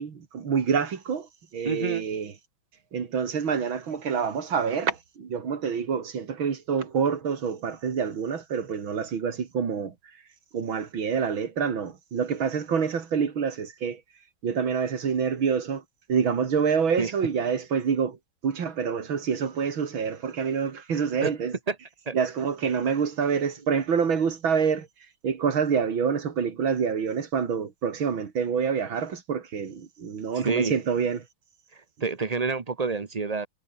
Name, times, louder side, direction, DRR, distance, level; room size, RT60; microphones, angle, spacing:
voice 1, 0.0-2.3 2.9-9.9 10.5-14.0 14.4-15.8 16.1-18.2 18.4-21.5 22.1-24.9 25.2-31.2, right 6 dB, 75° right, 3.1 m, -27 dB
voice 2, 1.6-2.0 17.0-17.1 21.2-21.3 21.7-21.8 22.1-22.2 30.3-30.7 31.7-33.5, right 4 dB, 35° right, 0.6 m, -28 dB
omnidirectional pair, 2.2 m